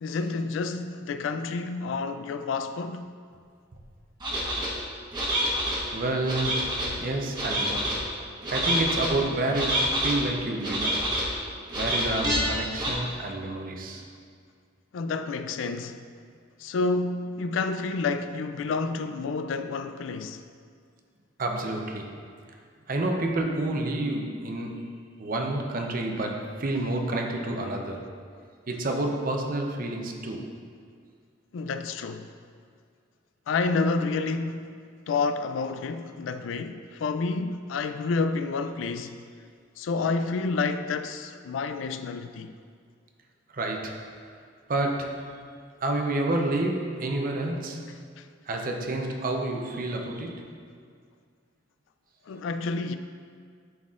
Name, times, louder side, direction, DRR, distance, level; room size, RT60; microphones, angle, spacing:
voice 1, 0.0-3.2 14.9-16.1 16.6-20.4 31.5-32.3 33.5-34.7 35.1-39.2 39.8-42.5 48.2-48.3 52.3-53.0, left 4 dB, 85° left, 0.3 m, -29 dB
sound 1, 4.2-4.7 5.1-5.8 6.2-6.9 7.3-8.0 8.4-9.1 9.5-10.1 10.6-11.3 11.7-12.4 12.8-12.9, equal, 25° right, 1.1 m, -27 dB
voice 2, 5.8-8.0 8.5-11.1 11.8-14.0 21.4-22.2 22.9-28.1 28.7-30.5 43.5-44.1 44.7-45.4 45.8-47.9 48.5-50.5, right 2 dB, 45° right, 0.6 m, -29 dB
11.0 x 4.0 x 2.5 m
head